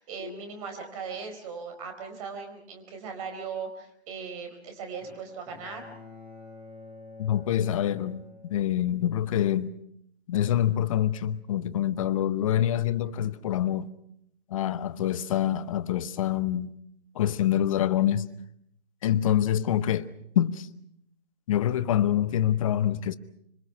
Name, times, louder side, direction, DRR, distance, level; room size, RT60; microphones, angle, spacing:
voice 1, 0.0-5.9, right 5 dB, 35° right, 4.5 m, -38 dB
Bowed string instrument, 5.0-9.2, left 3 dB, 5° right, 5.9 m, -48 dB
voice 2, 7.2-9.7 10.3-13.9 14.5-16.7 17.1-18.3 19.0-20.1 20.4-20.7 21.5-23.2, left 11 dB, 30° left, 0.9 m, -26 dB
26.0 x 23.0 x 6.0 m
figure-of-eight pair, 140°, 33 cm